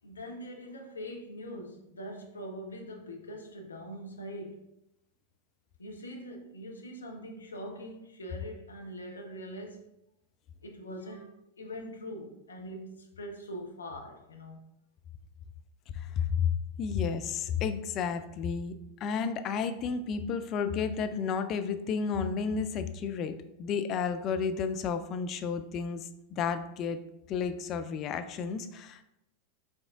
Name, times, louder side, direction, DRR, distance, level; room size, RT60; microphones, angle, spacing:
voice 1, 0.0-4.6 5.8-9.8 10.6-14.6, equal, 70° left, 3 dB, 0.6 m, -43 dB
voice 2, 15.9-16.5 16.8-27.0 27.3-29.0, left 6 dB, 35° left, 10 dB, 0.3 m, -32 dB
4.8 x 3.6 x 2.4 m, 0.86 s
figure-of-eight pair, 90°, 0 cm